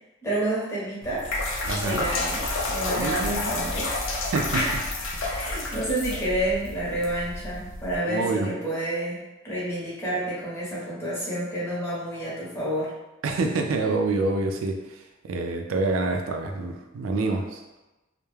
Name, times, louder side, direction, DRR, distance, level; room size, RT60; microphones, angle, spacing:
voice 1, 0.2-1.3 1.8-3.9 4.5-4.8 5.3-12.9, right 1 dB, 15° left, -8 dB, 0.8 m, -29 dB
sound 1, 1.0-8.0, left 2 dB, 70° left, 0.5 m, -30 dB
voice 2, 1.6-2.0 2.9-3.6 4.3-4.6 5.1-5.5 8.0-8.5 13.2-17.6, right 3 dB, 90° right, 4 dB, 0.4 m, -27 dB
2.3 x 2.1 x 3.1 m, 1.0 s
head